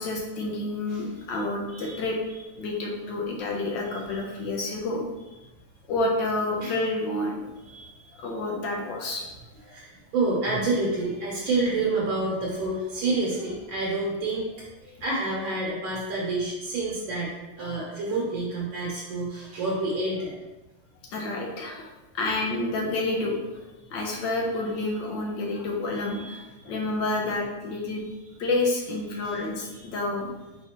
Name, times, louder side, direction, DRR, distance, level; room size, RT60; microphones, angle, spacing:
voice 1, 0.0-2.2 2.6-5.0 5.9-7.5 8.2-9.2 17.6-17.8 21.1-23.4 23.9-28.0 28.4-30.3, left 2 dB, 65° left, 0 dB, 1.3 m, -29 dB
voice 2, 9.7-14.5 15.0-17.3 17.6-20.4 26.1-26.7 29.2-29.4 29.7-29.8, right 2 dB, 70° right, -4 dB, 1.6 m, -28 dB
4.2 x 4.1 x 2.9 m, 1.0 s
omnidirectional pair, 2.4 m